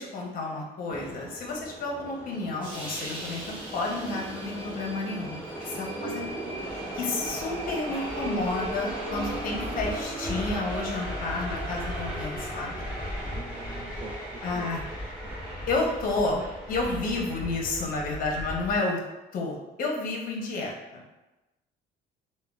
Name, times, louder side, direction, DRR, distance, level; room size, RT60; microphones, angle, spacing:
voice 1, 0.0-5.4 5.7-6.2 7.0-12.8 14.4-14.8 15.7-16.4 16.7-19.0 19.3-21.0, left 3 dB, 55° left, 0 dB, 0.7 m, -31 dB
Subway metro underground, 0.9-18.8, right 1 dB, 10° right, 1.4 m, -36 dB
voice 2, 6.0-6.4 13.3-14.8 15.2-15.5, right 4 dB, 30° right, 2 dB, 0.5 m, -43 dB
3.5 x 2.1 x 2.2 m, 1.0 s
cardioid pair, 110°, 17 cm